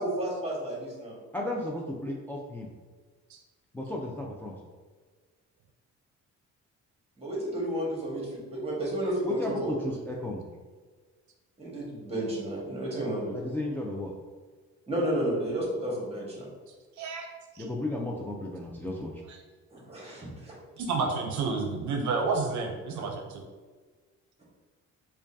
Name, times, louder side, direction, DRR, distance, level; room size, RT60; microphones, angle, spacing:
voice 1, 0.0-1.2 7.2-9.7 11.6-13.3 14.9-16.5 19.7-20.5, right 1 dB, 20° right, -3 dB, 1.3 m, -32 dB
voice 2, 1.3-2.7 3.7-4.5 9.2-10.4 13.3-14.1 17.6-19.1, left 1 dB, 5° left, -2 dB, 0.4 m, -34 dB
voice 3, 17.0-17.3 17.5-17.6 20.8-23.4, right 4 dB, 70° right, 2 dB, 0.6 m, -30 dB
4.8 x 2.3 x 2.6 m, 1.4 s
cardioid pair, 90°, 30 cm